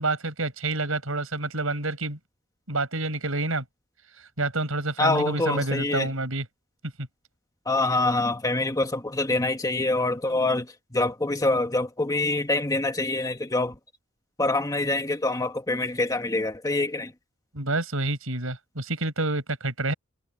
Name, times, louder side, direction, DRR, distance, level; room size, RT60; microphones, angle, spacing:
voice 1, 0.0-2.2 2.7-3.6 4.2-6.5 7.0-7.1 17.5-19.9, right 2 dB, 75° right, 6.4 m, -28 dB
voice 2, 5.0-6.1 7.7-13.7 14.4-17.1, left 2 dB, 15° left, 1.8 m, -25 dB
head